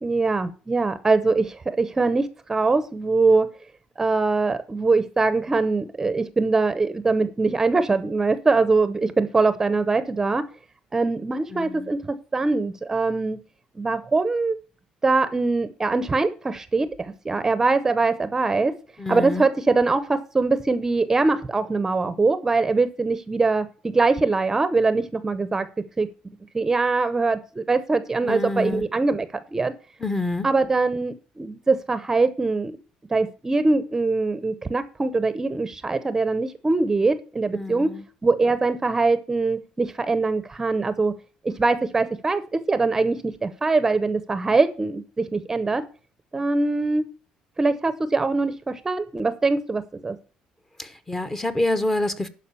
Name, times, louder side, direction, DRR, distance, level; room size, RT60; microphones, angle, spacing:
voice 1, 0.0-3.5 4.0-10.5 10.9-13.4 13.8-14.6 15.0-18.7 19.1-23.7 23.9-25.7 26.0-26.1 26.5-29.7 30.4-32.8 33.1-37.9 38.2-41.1 41.4-45.8 46.3-47.1 47.6-50.2, right 3 dB, 20° right, 0.8 m, -22 dB
voice 2, 11.5-11.9 19.0-19.4 28.2-28.8 30.0-30.5 37.5-38.0 50.8-52.3, left 2 dB, 15° left, 1.0 m, -27 dB
11.5 x 5.0 x 6.9 m
cardioid pair, 125°, 3 cm